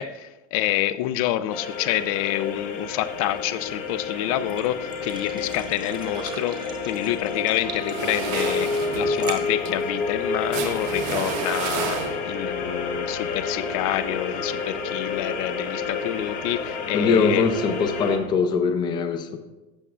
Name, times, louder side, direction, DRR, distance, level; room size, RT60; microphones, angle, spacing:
voice 1, 0.0-6.6 6.9-12.0 12.2-17.4, left 13 dB, 75° left, 14 dB, 0.5 m, -27 dB
sound 1, 1.5-18.2, left 4 dB, 45° left, 0.8 m, -30 dB
sound 2, 2.4-10.9, right 6 dB, 25° right, 0.7 m, -43 dB
sound 3, 7.9-12.5, right 7 dB, 65° right, 0.8 m, -32 dB
voice 2, 16.9-19.4, left 5 dB, 25° left, 7 dB, 0.5 m, -22 dB
11.5 x 6.9 x 2.4 m, 1.1 s
cardioid pair, 175°, 18 cm